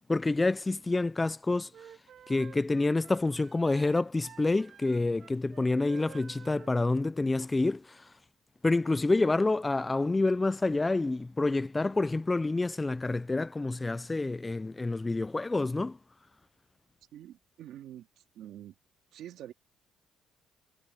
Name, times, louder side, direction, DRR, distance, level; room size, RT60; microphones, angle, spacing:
voice 1, 0.1-1.7 2.3-8.1 8.6-16.0, left 2 dB, 15° left, 0.3 m, -28 dB
Wind instrument woodwind instrument, 1.7-6.8, right 9 dB, 50° right, 5.9 m, -52 dB
voice 2, 17.1-18.7 19.1-19.5, right 11 dB, 70° right, 2.5 m, -46 dB
cardioid pair, 125°, 0 cm